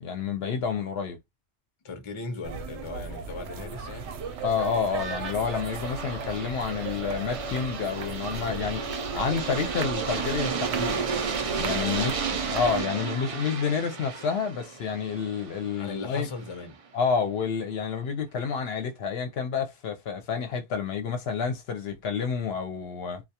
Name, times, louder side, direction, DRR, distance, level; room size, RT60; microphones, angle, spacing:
voice 1, 0.0-1.2 4.4-8.8 9.1-11.0 11.6-12.2 12.5-16.3 16.9-23.2, left 6 dB, 70° left, 0.8 m, -29 dB
voice 2, 1.8-4.2 11.8-13.4 15.8-16.8, left 3 dB, 35° left, 0.6 m, -39 dB
sound 1, 2.4-12.8, right 5 dB, 90° right, 0.9 m, -37 dB
Aircraft, 3.8-16.6, right 5 dB, 65° right, 0.3 m, -33 dB
2.2 x 2.2 x 2.7 m
omnidirectional pair, 1.2 m